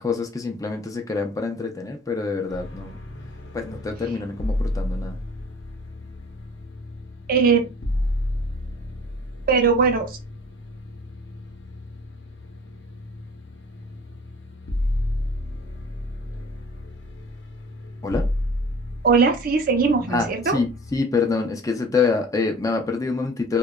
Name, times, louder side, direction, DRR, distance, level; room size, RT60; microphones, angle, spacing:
voice 1, 0.0-3.0 3.5-5.2 18.0-18.3 20.1-23.6, left 4 dB, 20° left, 0.4 m, -26 dB
sound 1, 2.5-21.0, left 1 dB, 80° left, 0.6 m, -31 dB
voice 2, 7.3-7.6 9.5-10.2 19.0-20.6, right 5 dB, 50° right, 0.6 m, -19 dB
2.7 x 2.2 x 2.2 m
head